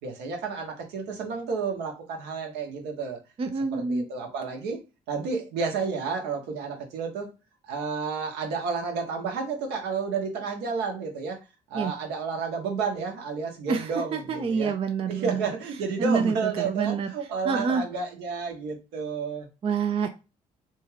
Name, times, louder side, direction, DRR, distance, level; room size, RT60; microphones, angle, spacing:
voice 1, 0.0-3.2 3.7-4.8 5.1-7.3 7.6-11.4 11.7-14.7 15.1-19.5, right 5 dB, 65° right, 3 dB, 0.9 m, -31 dB
voice 2, 3.4-4.1 11.7-11.9 13.7-15.4 16.0-17.1 17.4-17.8 19.6-20.1, right 5 dB, 30° right, 6 dB, 0.4 m, -27 dB
2.7 x 2.3 x 3.2 m, 0.30 s
hypercardioid pair, 45°, 19 cm